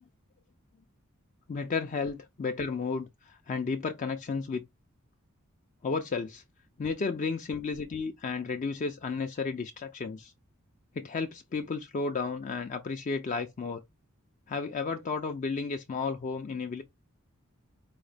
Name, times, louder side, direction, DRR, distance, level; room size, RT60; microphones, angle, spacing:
voice 1, 1.5-4.6 5.8-6.4 6.8-10.3 10.9-13.8 14.5-16.8, left 4 dB, 35° left, 0.3 m, -33 dB
4.7 x 2.1 x 3.3 m
head